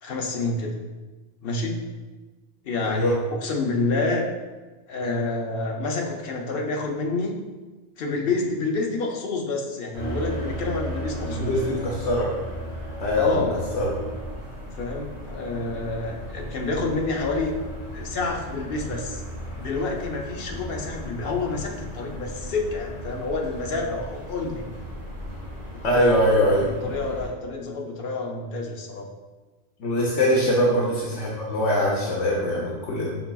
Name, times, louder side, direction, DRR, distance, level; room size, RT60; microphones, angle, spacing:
voice 1, 0.0-0.7 1.4-1.8 2.6-4.3 4.9-7.3 8.0-11.6 13.1-13.6 14.8-17.5 17.9-19.2 19.6-24.7 25.7-25.8 26.5-29.1 30.4-30.6, left 3 dB, 60° left, 1 dB, 0.8 m, -28 dB
voice 2, 2.8-3.2 11.3-12.3 13.0-13.5 13.7-13.9 25.8-26.7 29.8-33.1, left 1 dB, 85° left, -4 dB, 1.0 m, -22 dB
sound 1, 9.9-27.3, equal, 60° right, 1.7 m, -36 dB
5.7 x 4.0 x 2.3 m, 1.2 s
omnidirectional pair, 1.2 m